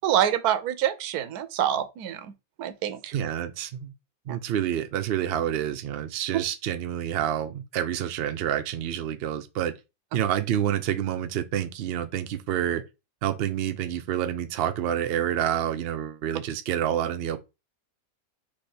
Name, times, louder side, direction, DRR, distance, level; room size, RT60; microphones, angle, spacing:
voice 1, 0.0-2.3 2.6-3.1, right 10 dB, 90° right, 1.1 m, -26 dB
voice 2, 3.1-3.9 4.3-9.7 10.1-12.8 13.2-17.4, right 10 dB, 65° right, 0.6 m, -28 dB
3.4 x 3.0 x 4.2 m
omnidirectional pair, 1.6 m